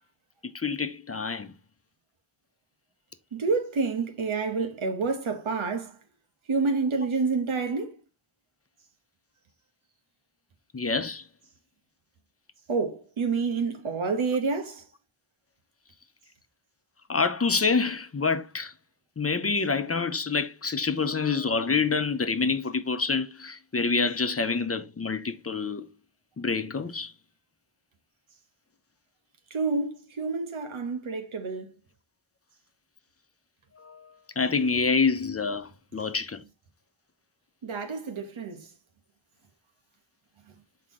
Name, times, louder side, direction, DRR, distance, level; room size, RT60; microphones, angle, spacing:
voice 1, 0.5-1.5 10.7-11.2 17.1-18.7 19.2-25.9 26.4-27.1 33.8-34.0 34.4-36.4, left 4 dB, 30° left, 0.7 m, -27 dB
voice 2, 3.3-6.0 6.5-8.0 12.7-14.8 29.5-31.7 37.6-38.7, right 4 dB, 90° right, 1.3 m, -28 dB
5.9 x 4.6 x 3.7 m
wide cardioid pair, 60°, 47 cm